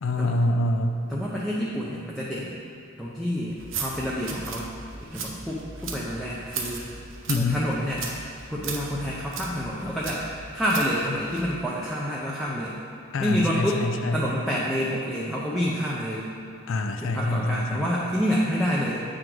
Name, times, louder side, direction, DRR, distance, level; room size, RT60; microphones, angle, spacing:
voice 1, 0.0-1.0 7.3-7.6 13.1-14.2 16.7-17.9, left 2 dB, 80° left, 6 dB, 0.4 m, -26 dB
voice 2, 1.1-2.5 3.0-4.7 5.0-6.9 7.3-8.0 8.5-10.3 10.5-12.8 13.2-13.8 14.1-16.3 17.0-19.0, equal, ahead, -6 dB, 0.5 m, -28 dB
sound 1, 3.5-11.5, right 4 dB, 80° right, 0.7 m, -37 dB
7.8 x 3.8 x 4.5 m, 2.4 s
head